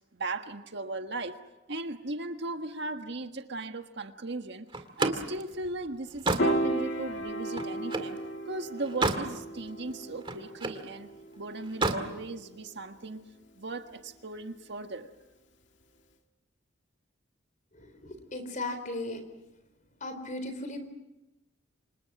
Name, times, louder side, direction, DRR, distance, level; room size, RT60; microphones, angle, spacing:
voice 1, 0.1-1.4 1.7-8.2 8.4-13.2 13.5-15.1, right 2 dB, 60° right, 6 dB, 1.6 m, -37 dB
Slam, 4.7-8.2 8.6-9.3 9.7-10.9 11.6-12.1, right 2 dB, 25° right, 2.1 m, -31 dB
Piano, 6.4-12.8, right 1 dB, 65° left, 2.4 m, -34 dB
voice 2, 17.7-19.2 20.0-20.9, left 2 dB, 40° left, 9 dB, 3.9 m, -37 dB
29.0 x 26.0 x 6.1 m, 0.99 s
head